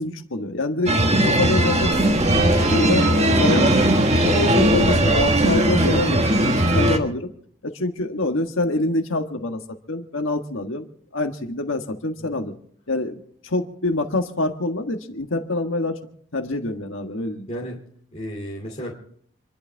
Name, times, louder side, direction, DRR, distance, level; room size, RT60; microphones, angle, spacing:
voice 1, 0.0-3.7 4.2-7.3 7.6-9.6 9.9-10.9 11.1-12.5 12.9-16.0 16.3-17.5, left 2 dB, 70° left, 5 dB, 1.6 m, -26 dB
sound 1, 0.9-7.0, right 1 dB, 30° right, 1.5 m, -18 dB
voice 2, 17.5-17.8 18.1-18.9, equal, 30° left, -3 dB, 2.6 m, -33 dB
28.0 x 12.0 x 3.5 m, 0.64 s
head